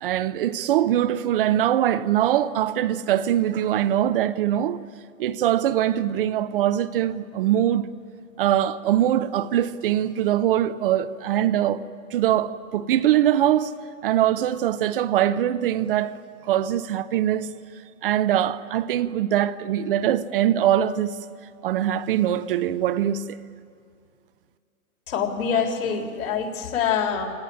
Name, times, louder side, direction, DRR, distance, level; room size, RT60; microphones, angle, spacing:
voice 1, 0.0-4.8 5.2-7.9 8.4-11.8 12.1-13.7 14.0-16.2 16.5-17.5 18.0-21.2 21.6-23.4, right 11 dB, 40° right, 0.6 m, -22 dB
voice 2, 25.1-27.3, left 7 dB, 70° left, 4.0 m, -25 dB
24.5 x 18.5 x 9.8 m
hypercardioid pair, 155°, 43 cm